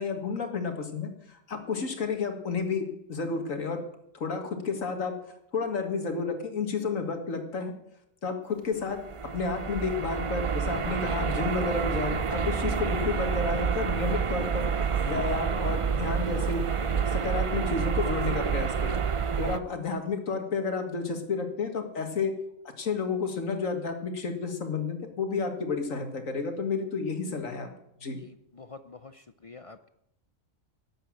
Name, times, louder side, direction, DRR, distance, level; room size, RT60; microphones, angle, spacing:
voice 1, 0.0-3.8 4.1-5.2 5.5-7.7 8.2-14.7 15.0-16.6 17.0-19.0 19.4-22.3 22.8-27.7 28.0-28.2, left 4 dB, 75° left, 5 dB, 2.2 m, -31 dB
sound 1, 8.9-19.6, right 6 dB, 55° right, 0.3 m, -28 dB
voice 2, 28.2-29.8, left 4 dB, 55° left, 11 dB, 0.3 m, -47 dB
12.0 x 7.9 x 8.8 m, 0.78 s
omnidirectional pair, 1.4 m